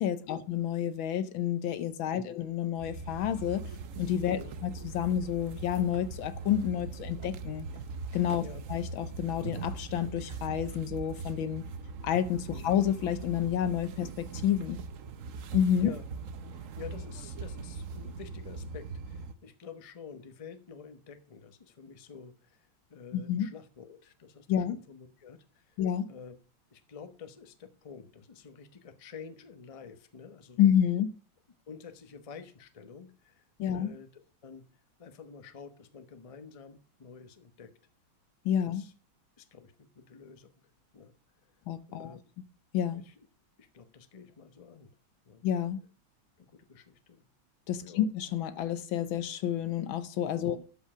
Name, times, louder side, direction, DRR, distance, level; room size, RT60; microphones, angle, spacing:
voice 1, 0.0-3.6 4.0-7.7 8.1-11.6 12.0-14.8 15.5-15.9 23.1-23.5 24.5-24.8 25.8-26.1 30.6-31.1 33.6-33.9 38.5-38.9 41.7-42.1 42.7-43.0 45.4-45.8 47.7-50.6, left 9 dB, 80° left, 1.6 m, -29 dB
sound 1, 2.8-19.3, right 4 dB, 60° right, 0.8 m, -41 dB
voice 2, 4.2-4.5 8.3-8.6 12.5-12.7 15.8-16.1 16.5-25.8 26.1-26.3 26.7-30.7 31.7-34.6 35.0-37.7 38.6-38.9 39.4-40.5 40.9-41.1 41.9-42.2 42.9-43.1 43.6-44.9 45.3-45.4 46.4-47.2 47.8-48.1 50.4-50.6, left 6 dB, 30° left, 0.7 m, -49 dB
12.0 x 5.5 x 6.1 m
omnidirectional pair, 2.2 m